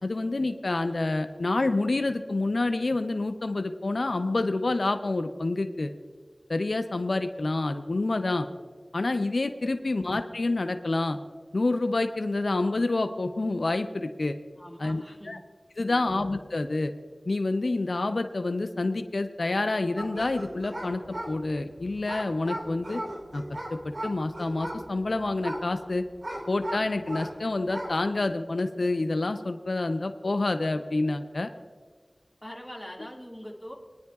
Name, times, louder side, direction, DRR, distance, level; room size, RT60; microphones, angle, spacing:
voice 1, 0.0-5.9 6.5-8.5 8.9-11.2 11.5-14.4 14.8-15.4 15.8-16.9 17.3-23.0 23.3-23.4 23.7-26.0 26.5-31.5, left 2 dB, 75° left, 8 dB, 0.5 m, -28 dB
voice 2, 14.6-15.4 15.8-16.2 32.4-33.7, equal, 5° left, -1 dB, 2.0 m, -43 dB
sound 1, 20.0-27.4 27.6-28.1, right 1 dB, 55° right, 3.4 m, -38 dB
21.5 x 10.0 x 2.3 m, 1.6 s
wide cardioid pair, 55°, 0 cm